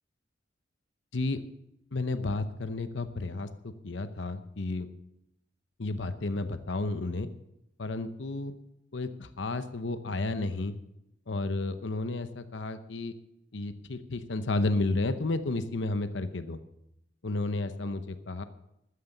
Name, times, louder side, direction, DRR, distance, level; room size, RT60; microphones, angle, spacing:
voice 1, 1.9-4.9 5.8-7.3 7.8-8.5 8.9-10.7 11.3-13.1 13.5-16.6 17.2-18.4, left 2 dB, 80° left, 10 dB, 0.8 m, -32 dB
13.0 x 9.6 x 6.6 m, 0.83 s
head